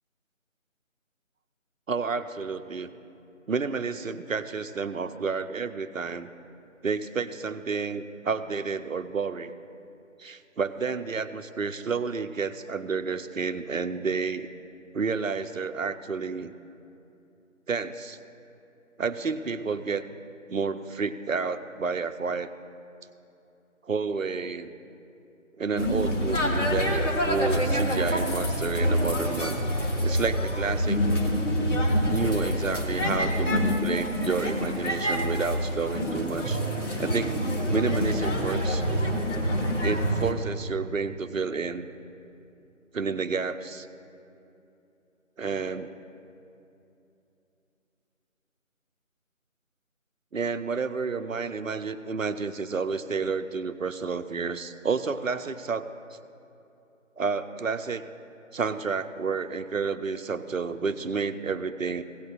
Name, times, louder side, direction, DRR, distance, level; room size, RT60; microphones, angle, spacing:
voice 1, 1.9-2.9 3.5-6.3 6.8-9.5 10.2-14.5 14.9-16.5 17.7-18.2 19.0-20.0 20.5-22.5 23.8-24.7 25.6-29.6 30.0-31.1 32.1-36.6 37.0-37.4 37.7-38.8 39.8-41.9 42.9-43.9 45.4-45.9 50.3-55.9 57.2-58.0 58.5-62.0, right 5 dB, 75° right, 10 dB, 0.7 m, -30 dB
sound 1, 25.8-40.3, equal, 60° left, 1.8 m, -26 dB
17.0 x 10.5 x 2.5 m, 2.8 s
figure-of-eight pair, 165°, 41 cm